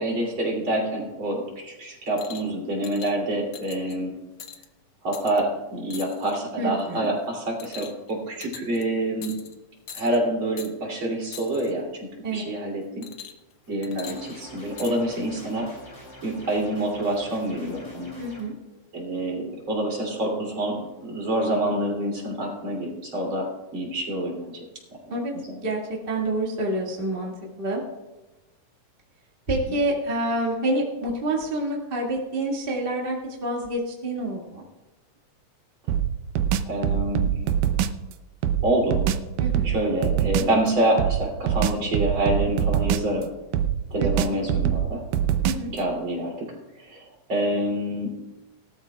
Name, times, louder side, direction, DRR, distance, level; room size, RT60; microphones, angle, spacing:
voice 1, 0.0-4.1 5.0-9.4 9.9-13.0 13.7-15.7 16.2-18.2 18.9-23.5 23.7-24.6 25.3-25.6 29.7-29.8 36.6-37.3 38.6-39.0 39.6-43.3 43.9-45.0 45.7-46.5 46.8-48.1, right 1 dB, 40° right, -2 dB, 3.5 m, -27 dB
sound 1, 2.2-2.5 2.8-3.1 3.5-4.0 4.4-4.6 5.1-5.4 5.9-6.4 6.8-7.1 7.6-8.1 8.4-8.8 9.2-9.5 9.9-10.2 10.6-10.7 11.3-11.7 13.0-13.5 13.8-14.9 15.8-15.9, left 8 dB, 85° left, 1.1 m, -41 dB
voice 2, 6.6-7.1 12.2-12.5 18.2-18.5 25.1-25.3 25.6-27.8 29.5-34.6 39.4-39.7 44.0-44.4 45.4-45.7, right 1 dB, 25° right, -2 dB, 1.4 m, -28 dB
sound 2, 14.0-18.4, equal, 35° left, 4.7 m, -45 dB
sound 3, 35.9-38.0 38.4-40.6 41.0-43.2 43.5-45.8, right 9 dB, 80° right, 2.2 m, -24 dB
19.0 x 13.0 x 2.3 m, 1.1 s
omnidirectional pair, 3.7 m